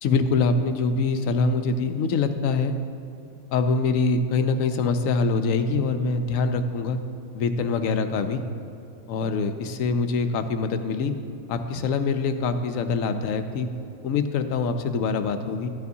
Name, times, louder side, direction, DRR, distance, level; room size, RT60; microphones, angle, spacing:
voice 1, 0.0-2.8 3.5-7.0 7.3-8.4 9.1-11.2 11.5-13.7 14.0-15.7, left 4 dB, 75° left, 8 dB, 1.0 m, -24 dB
13.0 x 9.4 x 2.7 m, 2.8 s
omnidirectional pair, 1.5 m